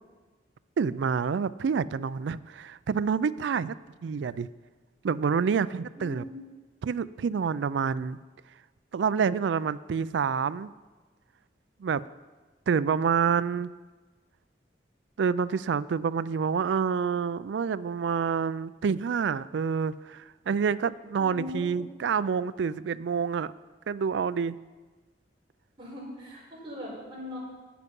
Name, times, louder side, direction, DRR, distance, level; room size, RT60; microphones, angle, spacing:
voice 1, 0.8-3.7 4.0-4.5 5.0-6.2 6.8-8.2 8.9-10.7 11.8-12.0 12.7-13.7 15.2-23.5 23.9-24.6, right 6 dB, 80° right, 17 dB, 0.4 m, -27 dB
voice 2, 5.9-6.3 21.2-21.8 25.8-27.4, left 1 dB, 25° right, -6 dB, 4.5 m, -40 dB
11.0 x 9.5 x 5.4 m, 1.3 s
head